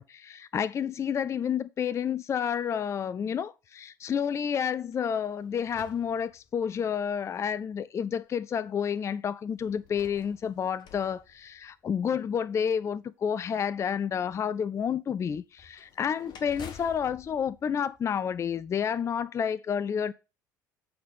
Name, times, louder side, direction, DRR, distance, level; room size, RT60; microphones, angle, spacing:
voice 1, 0.0-20.1, left 7 dB, 25° left, 0.4 m, -30 dB
sound 1, 4.9-6.9 7.6-7.7 9.6-12.1 15.5-18.6, left 7 dB, 45° left, 1.2 m, -51 dB
8.5 x 4.1 x 5.3 m
figure-of-eight pair, 60°, 11 cm